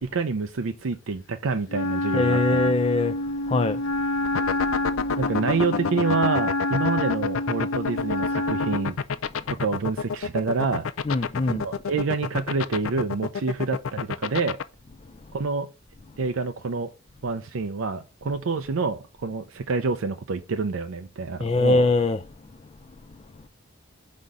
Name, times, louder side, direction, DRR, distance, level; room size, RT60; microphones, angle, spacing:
voice 1, 0.0-2.6 5.2-8.9 9.6-10.9 11.5-14.6 15.3-15.7 16.2-16.9 17.2-21.8, right 4 dB, 85° right, 0.5 m, -27 dB
Wind instrument woodwind instrument, 1.7-8.9, left 1 dB, 70° left, 0.8 m, -27 dB
voice 2, 2.1-3.2 3.4-3.8 4.5-4.6 11.0-11.6 21.4-22.3, left 2 dB, 30° left, 0.4 m, -22 dB
sound 1, 4.2-14.6, left 6 dB, 90° left, 0.5 m, -27 dB
5.2 x 4.2 x 4.8 m
head